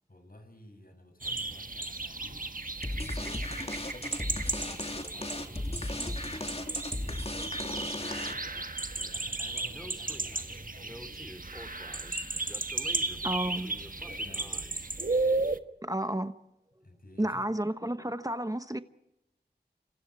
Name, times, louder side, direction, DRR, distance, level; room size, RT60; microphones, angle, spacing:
voice 1, 0.1-2.5 2.8-11.6 13.9-15.0 16.8-17.4, left 1 dB, 55° left, 7.3 m, -53 dB
sound 1, 1.2-15.6, right 3 dB, 50° right, 1.5 m, -35 dB
sound 2, 2.8-8.6, left 1 dB, 35° left, 2.6 m, -36 dB
Speech, 9.7-14.9, equal, 5° left, 2.6 m, -49 dB
voice 2, 13.2-13.7 15.8-16.3 17.2-18.8, right 1 dB, 20° right, 1.1 m, -31 dB
29.5 x 26.5 x 4.8 m
wide cardioid pair, 50°, 17 cm